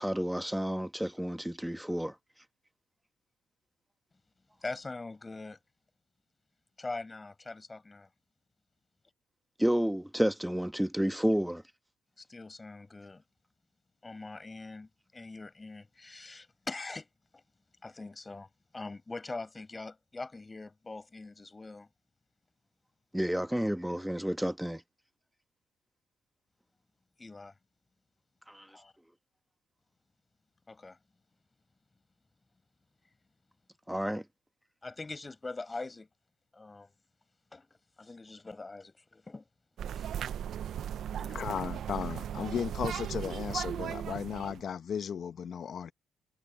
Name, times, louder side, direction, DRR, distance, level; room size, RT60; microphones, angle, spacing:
voice 1, 0.0-2.1 9.6-11.6 23.1-24.8 28.5-28.6 33.9-34.2, equal, 5° right, 1.2 m, -30 dB
voice 2, 4.6-5.6 6.8-8.1 12.2-13.2 14.0-17.1 17.3-17.4 17.8-21.9 27.2-27.5 28.7-28.9 30.7-31.0 34.8-36.1 36.5-36.9 37.5-39.5 39.9-40.1 41.2-41.3, left 3 dB, 20° left, 5.3 m, -43 dB
sound 1, 39.8-44.6, right 9 dB, 70° right, 0.6 m, -37 dB
voice 3, 41.1-45.9, left 7 dB, 55° left, 1.1 m, -35 dB
cardioid pair, 90°, 0 cm